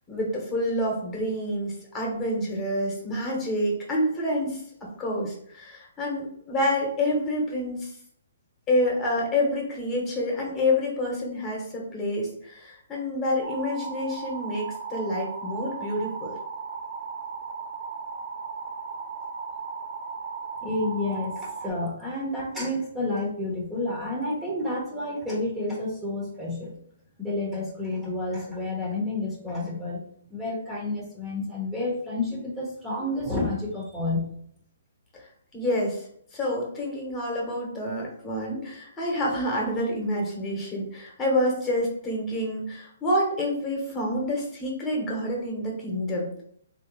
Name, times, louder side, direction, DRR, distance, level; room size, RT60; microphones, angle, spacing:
voice 1, 0.1-7.9 8.7-16.4 35.1-36.1 36.3-46.4, left 1 dB, 20° left, -2 dB, 1.2 m, -28 dB
sound 1, 13.4-21.7, right 5 dB, 60° right, 0.5 m, -36 dB
voice 2, 20.6-26.7 27.2-30.0 30.3-34.3, left 2 dB, 10° right, -5 dB, 1.0 m, -30 dB
3.2 x 2.8 x 4.0 m, 0.66 s
hypercardioid pair, 145°, 0 cm